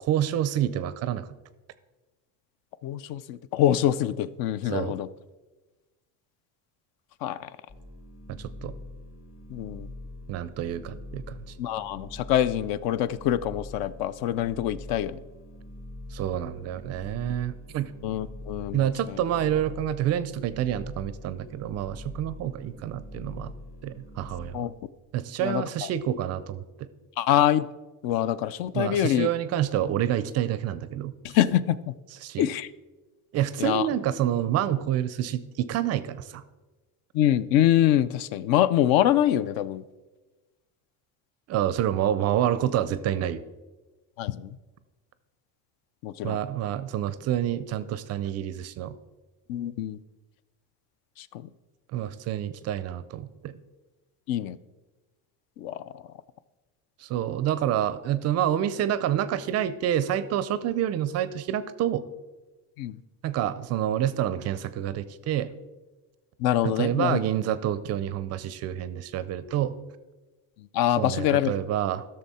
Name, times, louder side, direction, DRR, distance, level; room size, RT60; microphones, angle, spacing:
voice 1, 0.1-1.3 4.7-5.0 8.3-8.7 10.3-11.4 16.1-17.9 18.7-23.5 23.8-24.7 25.1-26.9 28.7-31.1 32.2-32.5 33.3-36.4 41.5-43.4 46.2-48.9 51.9-53.6 57.0-62.0 63.2-65.5 66.6-69.7 71.0-72.0, right 11 dB, 40° right, 15 dB, 0.4 m, -28 dB
voice 2, 2.8-5.1 7.2-7.5 9.5-9.9 11.6-15.2 18.0-19.2 24.5-24.7 25.4-25.9 27.2-27.7 28.0-29.3 31.2-31.8 32.4-32.7 33.6-33.9 37.1-39.8 44.2-44.5 46.0-46.4 49.5-50.0 51.2-51.5 54.3-54.6 55.6-55.8 62.8-63.0 66.4-67.2 70.7-71.5, left 12 dB, 60° left, 16 dB, 0.5 m, -25 dB
sound 1, 7.7-24.5, left 1 dB, 30° left, 1.4 m, -43 dB
13.5 x 6.6 x 4.1 m, 1.2 s
cardioid pair, 160°, 41 cm